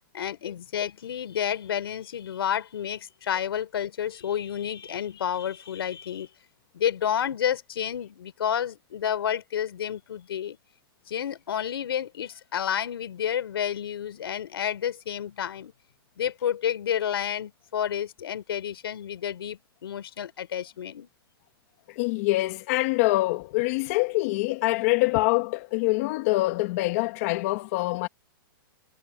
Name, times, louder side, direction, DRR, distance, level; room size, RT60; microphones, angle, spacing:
voice 1, 0.0-6.3 6.7-10.6 11.1-15.7 16.2-21.1, left 9 dB, 80° left, 4.6 m, -30 dB
voice 2, 21.9-28.1, left 21 dB, 35° left, 1.7 m, -25 dB
hypercardioid pair, 165°, 12 cm